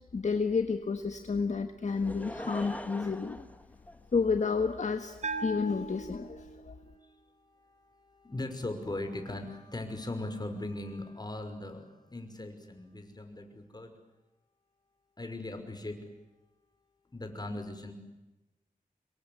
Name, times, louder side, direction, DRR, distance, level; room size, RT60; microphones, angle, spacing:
voice 1, 0.1-3.4 4.1-6.7, left 4 dB, 50° left, 7 dB, 1.6 m, -30 dB
Laughter / Crowd, 1.9-4.5 5.2-5.3, left 1 dB, 10° left, 1.7 m, -42 dB
Bell, 5.2-6.8, right 3 dB, 50° right, 3.6 m, -38 dB
voice 2, 6.7-13.9 15.2-16.0 17.1-17.9, left 2 dB, 25° left, 6 dB, 5.6 m, -39 dB
26.0 x 23.0 x 9.6 m, 1.0 s
wide cardioid pair, 80°, 15 cm